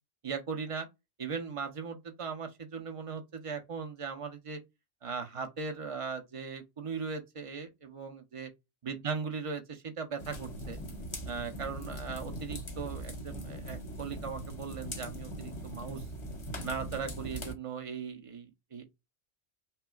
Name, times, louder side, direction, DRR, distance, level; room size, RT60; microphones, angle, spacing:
voice 1, 0.2-0.9 1.2-4.6 5.0-8.5 8.8-10.8 11.3-16.0 16.6-18.8, right 5 dB, 35° right, 0.6 m, -38 dB
sound 1, 10.2-17.5, equal, 30° left, 0.7 m, -41 dB
5.6 x 2.0 x 2.3 m
omnidirectional pair, 1.3 m